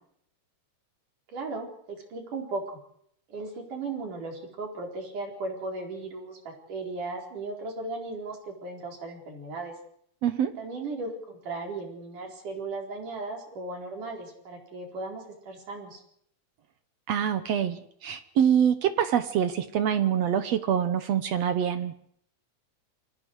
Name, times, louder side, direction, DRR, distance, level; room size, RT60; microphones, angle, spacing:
voice 1, 1.3-2.8 3.3-9.8 10.6-16.0, right 3 dB, 80° right, 1 dB, 6.2 m, -36 dB
voice 2, 10.2-10.6 17.1-22.0, right 9 dB, 65° right, 10 dB, 2.0 m, -25 dB
28.0 x 24.5 x 4.8 m, 0.69 s
omnidirectional pair, 3.6 m